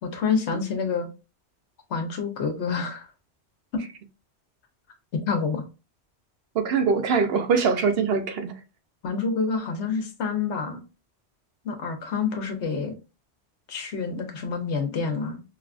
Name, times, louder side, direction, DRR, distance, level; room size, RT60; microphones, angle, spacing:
voice 1, 0.0-1.1 1.9-3.1 3.7-3.8 5.3-5.6 9.0-10.8 11.6-12.9 13.7-15.4, left 5 dB, 75° left, 1.1 m, -27 dB
voice 2, 6.5-8.5, right 5 dB, 65° right, 0.8 m, -23 dB
5.3 x 2.4 x 2.4 m
omnidirectional pair, 1.1 m